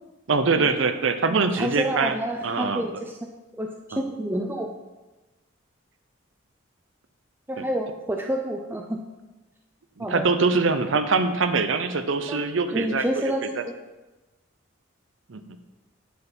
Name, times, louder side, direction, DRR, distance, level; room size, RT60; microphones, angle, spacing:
voice 1, 0.3-2.2 2.4-2.8 3.9-4.0 10.0-13.2 13.6-13.7 15.3-15.4, right 4 dB, 70° right, 9 dB, 0.7 m, -23 dB
voice 2, 1.3-3.2 3.6-4.7 7.5-9.0 10.0-10.3 12.3-12.4 12.7-13.5, right 1 dB, 10° right, 2 dB, 0.4 m, -29 dB
10.0 x 4.8 x 5.4 m, 1.1 s
head